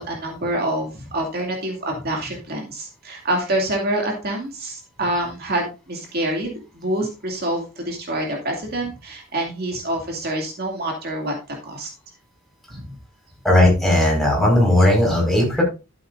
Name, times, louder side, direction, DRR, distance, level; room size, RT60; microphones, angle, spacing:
voice 1, 0.0-11.9 12.7-12.9, right 1 dB, 50° right, 0 dB, 2.5 m, -26 dB
voice 2, 13.4-15.6, left 1 dB, ahead, -2 dB, 5.0 m, -16 dB
13.0 x 8.1 x 2.6 m, 0.28 s
head